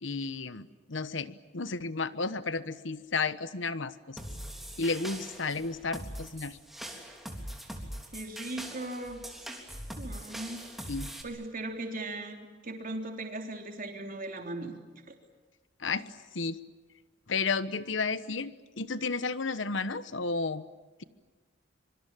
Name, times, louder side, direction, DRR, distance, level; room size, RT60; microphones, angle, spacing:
voice 1, 0.0-4.2 4.8-6.6 10.9-11.1 15.8-16.0 16.3-16.6 17.3-20.6, left 4 dB, 75° left, 14 dB, 1.1 m, -32 dB
sound 1, 4.2-11.2, equal, ahead, 3.4 m, -42 dB
voice 2, 8.1-9.3 10.0-10.7 11.2-14.7 15.1-15.2, right 2 dB, 45° right, 3 dB, 3.5 m, -38 dB
25.0 x 24.5 x 9.1 m, 1.3 s
head